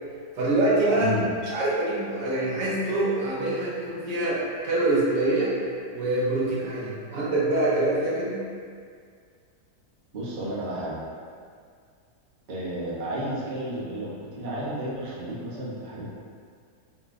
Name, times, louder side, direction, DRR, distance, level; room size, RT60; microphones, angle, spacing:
voice 1, 0.4-1.1 1.5-5.5 5.9-8.4, right 2 dB, 85° right, -7 dB, 1.6 m, -25 dB
voice 2, 10.1-11.0 12.5-16.1, right 1 dB, 40° right, -7 dB, 0.7 m, -32 dB
4.0 x 3.7 x 2.5 m, 2.1 s
omnidirectional pair, 1.8 m